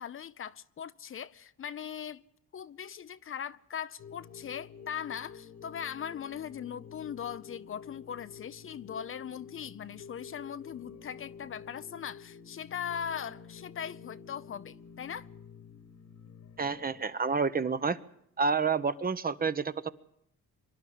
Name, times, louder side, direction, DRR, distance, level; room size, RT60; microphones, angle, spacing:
voice 1, 0.0-2.2 2.5-15.3, left 8 dB, 45° left, 0.7 m, -40 dB
sound 1, 4.0-17.0, left 6 dB, 65° left, 1.8 m, -49 dB
voice 2, 16.6-18.0 18.4-19.9, right 5 dB, 30° right, 0.9 m, -29 dB
24.5 x 11.0 x 9.9 m
cardioid pair, 90°, 30 cm